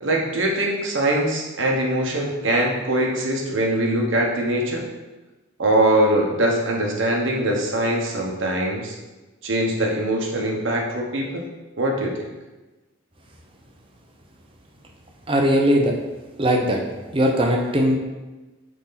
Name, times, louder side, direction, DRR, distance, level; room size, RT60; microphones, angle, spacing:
voice 1, 0.0-4.8 5.6-8.9 9.4-11.5 11.8-12.1, right 1 dB, 65° right, 0 dB, 1.2 m, -22 dB
voice 2, 15.3-15.9 16.4-16.8 17.1-18.0, equal, 25° right, 1 dB, 0.7 m, -19 dB
6.1 x 4.3 x 4.0 m, 1.1 s
head